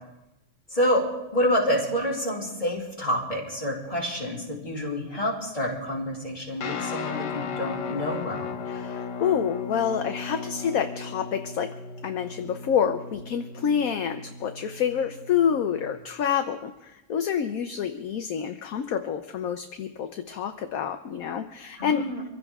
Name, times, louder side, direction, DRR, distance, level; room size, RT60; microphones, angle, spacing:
voice 1, 0.7-1.0 1.3-8.5 21.8-22.3, equal, 20° left, -5 dB, 4.0 m, -28 dB
Guitar, 6.6-16.0, left 5 dB, 85° left, 1.6 m, -36 dB
voice 2, 8.7-11.7 12.0-22.0, left 8 dB, 60° left, 7 dB, 1.2 m, -28 dB
25.0 x 16.0 x 3.6 m, 0.99 s
omnidirectional pair, 1.8 m